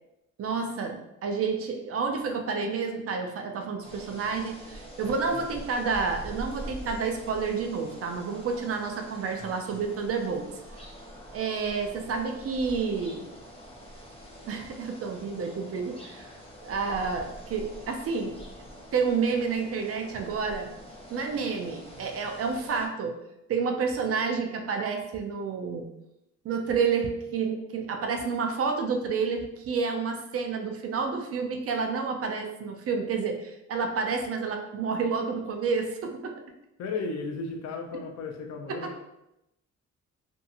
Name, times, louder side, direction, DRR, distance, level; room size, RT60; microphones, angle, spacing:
voice 1, 0.4-10.5 11.3-13.3 14.5-16.3 16.6-18.4 18.9-20.7 21.1-23.1 23.5-25.9 26.4-36.3, right 5 dB, 50° right, 4 dB, 0.5 m, -29 dB
sound 1, 3.8-22.9, equal, 20° left, 0.7 m, -45 dB
voice 2, 5.0-5.5 9.4-9.5 36.8-39.0, left 4 dB, 60° left, 3 dB, 0.5 m, -35 dB
2.7 x 2.6 x 2.4 m, 0.87 s
cardioid pair, 90°, 30 cm